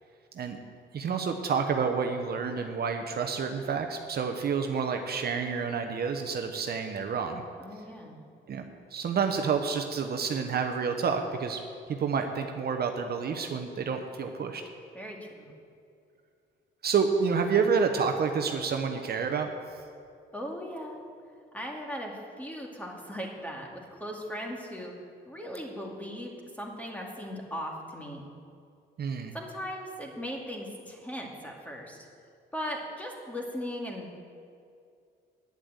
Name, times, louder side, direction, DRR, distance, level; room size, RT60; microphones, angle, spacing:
voice 1, 0.9-7.4 8.5-8.6 8.9-11.6 11.9-14.6 16.8-19.5 29.0-29.4, right 5 dB, 50° right, 5 dB, 0.9 m, -29 dB
voice 2, 7.6-8.2 14.9-15.5 20.3-21.0 21.5-24.9 25.3-28.2 29.3-32.1 32.5-34.2, equal, 5° left, -1 dB, 2.3 m, -38 dB
9.8 x 8.0 x 8.0 m, 2.4 s
cardioid pair, 90°, 20 cm